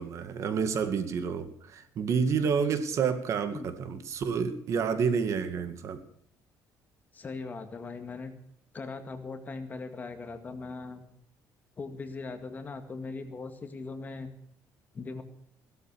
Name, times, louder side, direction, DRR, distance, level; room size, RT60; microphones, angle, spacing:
voice 1, 0.0-6.0, right 6 dB, 50° right, 10 dB, 2.0 m, -29 dB
voice 2, 7.1-8.3 8.7-11.0 11.8-14.3 14.9-15.2, left 4 dB, 25° left, 8 dB, 2.0 m, -39 dB
17.0 x 13.0 x 6.3 m, 0.68 s
cardioid pair, 155°, 7 cm